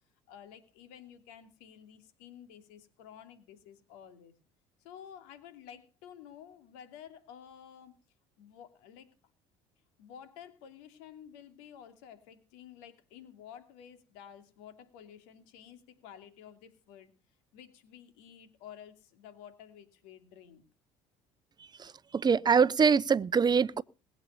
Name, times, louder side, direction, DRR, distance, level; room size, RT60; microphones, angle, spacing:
voice 1, 0.3-4.3 4.8-8.0 8.4-9.1 10.0-17.1 17.5-20.6, left 9 dB, 80° left, 2.8 m, -52 dB
voice 2, 21.8-23.8, right 6 dB, 25° right, 0.7 m, -24 dB
20.5 x 8.2 x 5.7 m
supercardioid pair, 75°, 15 cm